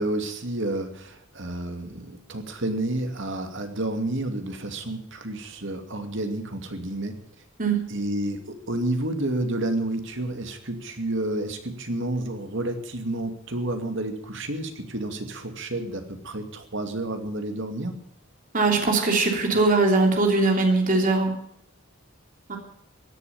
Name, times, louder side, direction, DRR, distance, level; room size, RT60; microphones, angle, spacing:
voice 1, 0.0-7.2 7.9-18.0, right 1 dB, 60° right, 6 dB, 2.5 m, -30 dB
voice 2, 18.5-21.3 22.5-22.6, right 3 dB, 40° right, 2 dB, 3.3 m, -21 dB
16.5 x 11.5 x 7.1 m, 0.69 s
head